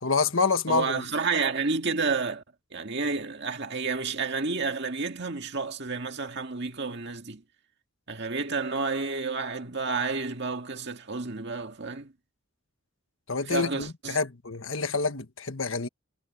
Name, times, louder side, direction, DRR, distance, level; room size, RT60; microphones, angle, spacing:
voice 1, 0.0-1.0 13.3-15.9, left 4 dB, 60° left, 1.5 m, -27 dB
voice 2, 0.7-2.4 2.7-7.4 8.1-12.1 13.5-14.2, right 4 dB, 50° right, 2.0 m, -30 dB
head